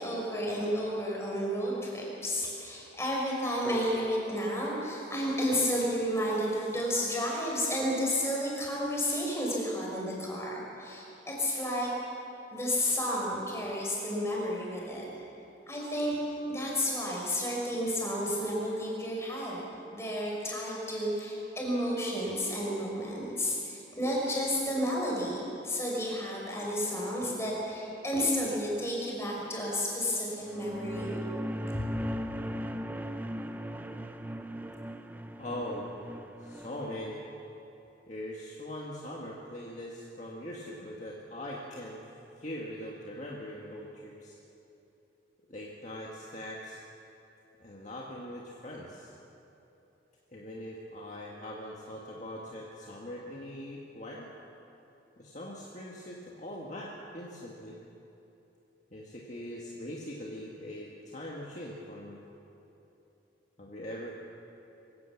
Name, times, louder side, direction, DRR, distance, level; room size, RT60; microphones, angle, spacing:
voice 1, 0.0-11.9 12.5-15.1 15.7-16.2 16.5-19.6 19.9-31.1, equal, 15° left, -3 dB, 5.3 m, -31 dB
sound 1, 30.4-37.0, equal, 10° right, 0.6 m, -38 dB
voice 2, 31.7-32.1 35.4-36.0 36.4-37.2 38.1-42.0 42.4-44.4 45.5-46.8 47.6-49.1 50.3-54.3 55.2-57.8 58.9-62.2 63.6-64.1, left 1 dB, 40° left, -3 dB, 1.8 m, -41 dB
24.0 x 16.5 x 7.2 m, 3.0 s
head